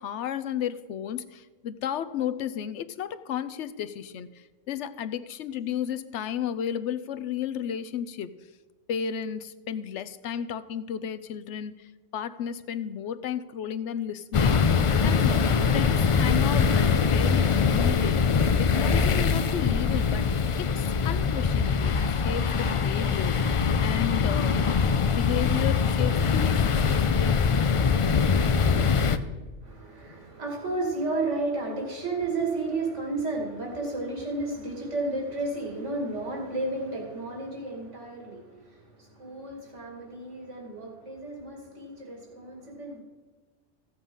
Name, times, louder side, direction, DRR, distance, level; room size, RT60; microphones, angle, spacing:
voice 1, 0.0-8.3 8.9-14.6 15.0-20.3 20.6-24.7 25.0-27.4 30.1-30.2, left 9 dB, 80° left, 13 dB, 1.0 m, -33 dB
sound 1, 14.3-29.2, left 5 dB, 50° left, 0.4 m, -23 dB
voice 2, 29.6-43.0, right 2 dB, 85° right, 0 dB, 2.8 m, -32 dB
15.0 x 8.0 x 5.4 m, 1.3 s
omnidirectional pair, 1.2 m